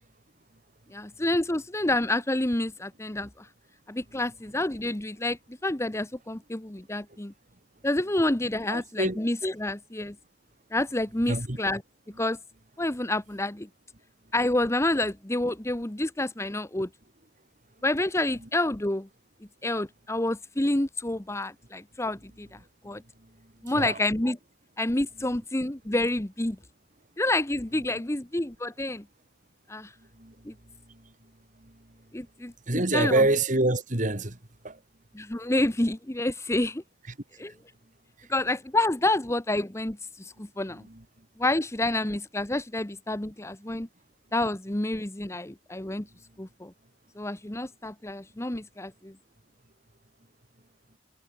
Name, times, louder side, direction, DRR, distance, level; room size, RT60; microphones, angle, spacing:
voice 1, 0.9-3.5 3.9-7.3 7.8-10.1 10.7-11.8 12.2-12.4 12.8-13.7 14.3-16.9 17.8-19.1 19.6-22.6 22.8-23.0 23.6-24.4 24.8-26.6 27.2-29.0 29.7-29.9 30.4-30.5 32.1-33.2 35.1-36.8 37.4-37.5 38.3-40.8 41.4-43.9 44.3-46.1 46.4-46.7 47.2-49.1, left 1 dB, 15° left, 1.1 m, -28 dB
voice 2, 8.7-9.2 11.2-11.6 18.4-18.5 23.8-24.0 25.2-25.3 27.9-28.0 30.2-30.3 32.7-34.4 34.6-34.8 40.7-41.0, right 2 dB, 45° right, 2.6 m, -26 dB
head